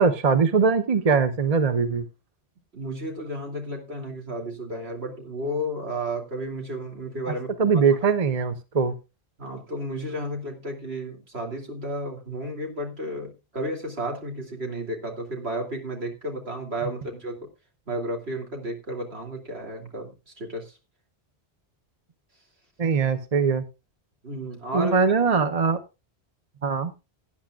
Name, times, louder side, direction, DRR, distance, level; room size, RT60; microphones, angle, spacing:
voice 1, 0.0-2.0 7.6-8.9 22.8-23.6 24.7-25.8 26.6-26.9, right 5 dB, 40° right, 10 dB, 0.9 m, -21 dB
voice 2, 2.7-7.8 9.4-17.4 17.9-20.7 24.2-24.9, right 1 dB, 75° right, 2 dB, 3.1 m, -32 dB
18.0 x 9.8 x 2.4 m, 0.27 s
omnidirectional pair, 1.1 m